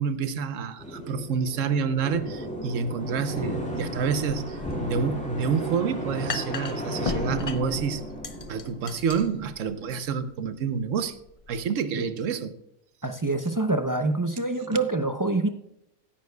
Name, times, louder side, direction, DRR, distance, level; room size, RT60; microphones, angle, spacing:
voice 1, 0.0-8.0 8.5-11.2 11.5-12.6, right 6 dB, 70° right, 1.2 m, -28 dB
sound 1, 0.8-9.6, equal, 5° left, 2.1 m, -34 dB
sound 2, 3.8-11.6, left 4 dB, 35° left, 0.5 m, -38 dB
voice 2, 13.0-15.5, right 2 dB, 30° right, 0.3 m, -26 dB
16.0 x 10.0 x 2.3 m
omnidirectional pair, 1.4 m